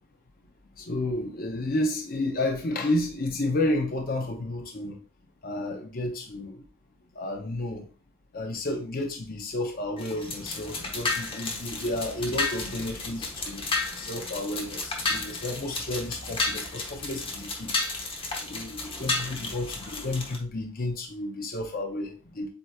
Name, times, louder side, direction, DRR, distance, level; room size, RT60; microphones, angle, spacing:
voice 1, 0.8-5.0 5.4-6.6 7.1-7.9 8.3-13.6 14.0-17.7 18.4-22.5, left 1 dB, 45° left, 2 dB, 0.7 m, -31 dB
sound 1, 10.0-20.4, left 3 dB, 25° left, 0.9 m, -32 dB
7.7 x 2.9 x 2.3 m, 0.36 s
head